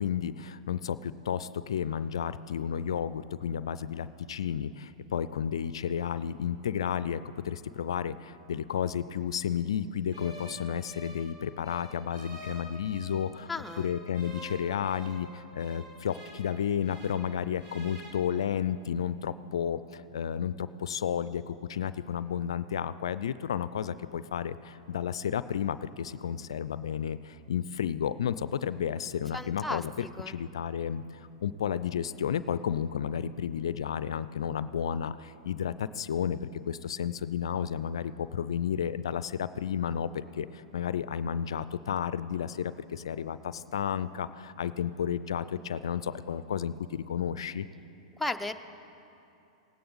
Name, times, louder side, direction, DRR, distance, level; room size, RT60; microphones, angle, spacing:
voice 1, 0.0-13.5 13.8-47.7, left 8 dB, 75° left, 15 dB, 0.3 m, -32 dB
sound 1, 10.1-13.3 13.6-17.3 17.6-18.1, equal, 50° right, 2.5 m, -47 dB
voice 2, 13.5-13.9 29.3-29.8 30.2-30.4 48.2-48.5, left 2 dB, 5° left, 6 dB, 0.5 m, -34 dB
18.5 x 9.2 x 3.9 m, 2.8 s
hypercardioid pair, 105°, 3 cm